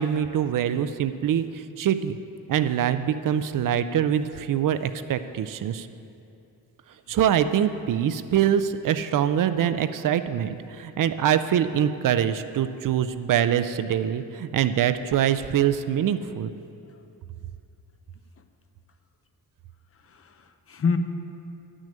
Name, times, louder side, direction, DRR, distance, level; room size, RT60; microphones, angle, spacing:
voice 1, 0.0-2.2 2.5-5.9 7.1-16.5, right 9 dB, 60° right, 11 dB, 0.5 m, -24 dB
voice 2, 19.9-21.0, left 5 dB, 35° left, 8 dB, 0.6 m, -28 dB
10.5 x 6.3 x 8.7 m, 2.7 s
wide cardioid pair, 165°, 37 cm